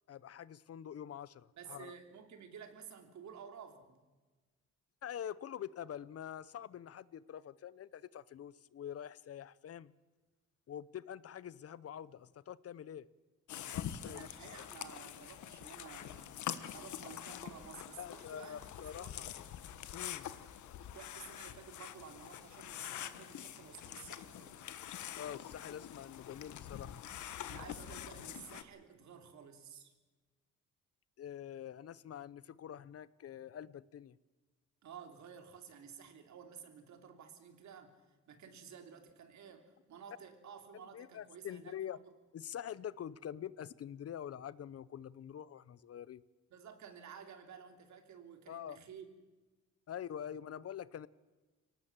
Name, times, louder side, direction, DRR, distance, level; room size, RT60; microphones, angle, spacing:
voice 1, 0.1-1.9 5.0-9.9 10.7-13.1 13.6-14.3 18.0-19.5 19.9-20.4 25.2-27.0 31.2-34.2 40.9-42.0 42.3-46.2 48.5-48.8 49.9-51.1, left 9 dB, 50° left, 0.7 m, -46 dB
voice 2, 1.6-4.0 14.0-16.4 16.7-19.3 20.9-24.6 27.5-29.9 34.8-42.0 46.5-49.1, right 7 dB, 65° right, 3.2 m, -53 dB
sound 1, 13.5-28.6, left 10 dB, 75° left, 1.3 m, -45 dB
23.5 x 18.5 x 7.4 m
cardioid pair, 90°, 30 cm